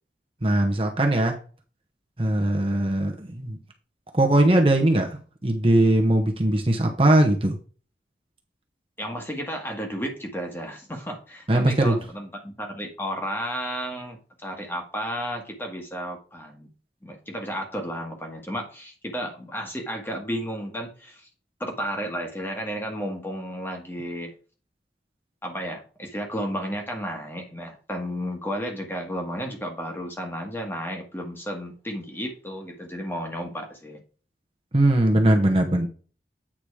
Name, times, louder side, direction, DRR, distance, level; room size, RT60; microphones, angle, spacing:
voice 1, 0.4-1.4 2.2-3.6 4.1-7.6 11.5-12.0 34.7-35.9, right 1 dB, 30° right, 2 dB, 1.1 m, -20 dB
voice 2, 9.0-16.7 17.0-21.3 21.6-24.3 25.4-34.0, equal, 10° left, 2 dB, 1.5 m, -33 dB
8.7 x 4.1 x 4.8 m, 0.37 s
head